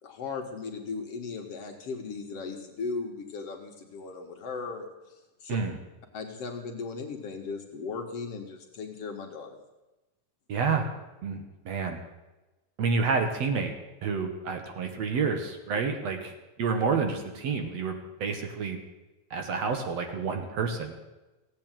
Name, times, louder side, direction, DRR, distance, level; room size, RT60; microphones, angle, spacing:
voice 1, 0.0-5.6 6.1-9.6, left 4 dB, 55° left, 3 dB, 2.1 m, -37 dB
voice 2, 10.5-10.9 11.2-12.0 12.8-13.7 14.0-16.3 16.6-18.8 19.3-21.0, right 5 dB, 60° right, 5 dB, 2.3 m, -29 dB
16.0 x 8.7 x 8.9 m, 1.1 s
omnidirectional pair, 3.6 m